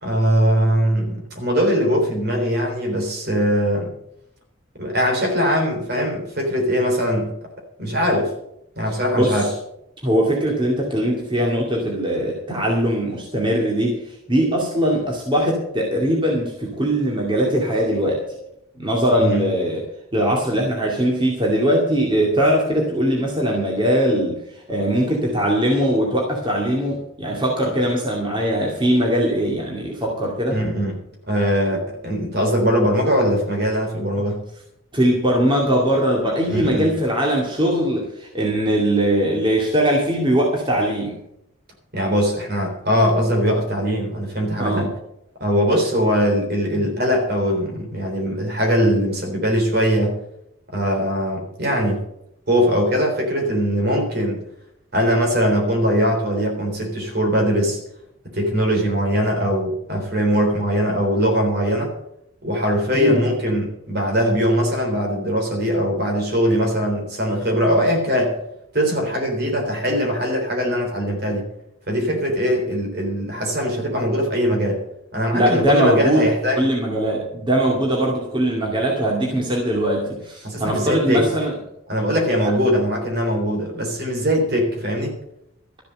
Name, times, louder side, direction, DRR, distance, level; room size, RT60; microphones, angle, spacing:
voice 1, 0.0-3.9 4.8-7.3 7.8-8.3 8.8-9.5 19.2-19.4 30.5-31.0 31.3-34.4 36.5-36.9 41.9-44.9 45.4-50.2 50.7-52.0 52.5-54.4 54.9-57.8 58.2-61.9 62.4-68.4 68.7-71.5 71.9-74.8 75.1-76.7 80.4-81.3 81.9-85.1, equal, 50° right, 2 dB, 3.7 m, -21 dB
voice 2, 9.1-9.5 10.0-18.4 18.8-19.8 20.1-30.6 34.9-41.2 44.6-44.8 46.7-46.9 62.9-63.3 75.3-76.2 76.6-81.5, equal, 25° right, -2 dB, 2.4 m, -21 dB
13.5 x 7.4 x 7.9 m, 0.79 s
head